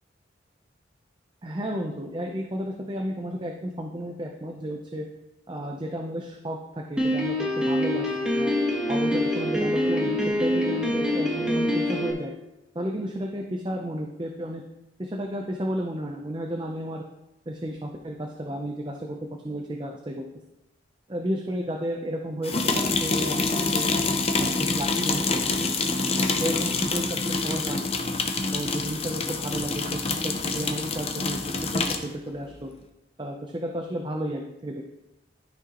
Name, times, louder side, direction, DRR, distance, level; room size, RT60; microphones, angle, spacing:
voice 1, 1.4-5.1 5.5-6.6 6.9-8.5 8.9-12.3 12.7-14.6 15.0-17.0 17.5-20.2 21.1-23.9 24.4-25.5 26.2-27.9 28.4-32.7 33.2-34.9, equal, 25° right, 2 dB, 0.6 m, -33 dB
Piano, 7.0-12.1, left 1 dB, 5° right, 1.2 m, -25 dB
sound 1, 22.4-32.1, left 3 dB, 30° left, 0.6 m, -26 dB
12.5 x 6.1 x 3.0 m, 0.94 s
head